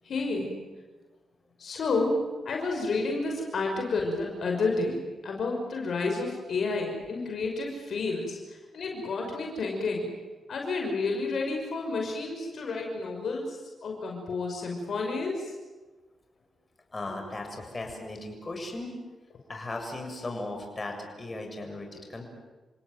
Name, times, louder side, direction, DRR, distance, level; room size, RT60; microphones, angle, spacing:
voice 1, 0.0-0.5 1.6-10.1 10.5-15.5, left 3 dB, 65° left, 1 dB, 5.9 m, -30 dB
voice 2, 16.9-18.9 19.5-22.2, left 2 dB, 30° left, 3 dB, 7.3 m, -37 dB
29.5 x 18.0 x 9.4 m, 1.2 s
supercardioid pair, 55°, 0 cm